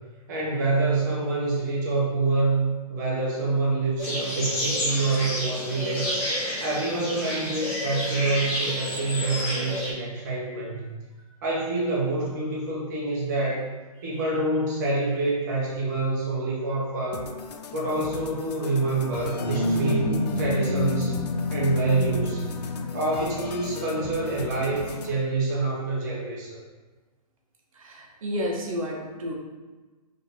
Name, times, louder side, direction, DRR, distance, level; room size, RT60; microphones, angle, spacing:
voice 1, 0.3-6.2 6.6-10.9 11.4-13.6 14.0-17.3 17.7-21.2 21.5-22.4 22.9-26.6, right 3 dB, 25° right, -4 dB, 0.9 m, -26 dB
sound 1, 4.0-9.9, equal, 20° left, 0.9 m, -30 dB
sound 2, 17.1-25.1, left 6 dB, 80° left, 0.4 m, -39 dB
sound 3, 19.4-25.1, left 2 dB, 55° left, 1.0 m, -29 dB
voice 2, 27.7-29.3, equal, 55° right, 0 dB, 0.9 m, -32 dB
3.8 x 2.6 x 4.2 m, 1.3 s
hypercardioid pair, 170°, 20 cm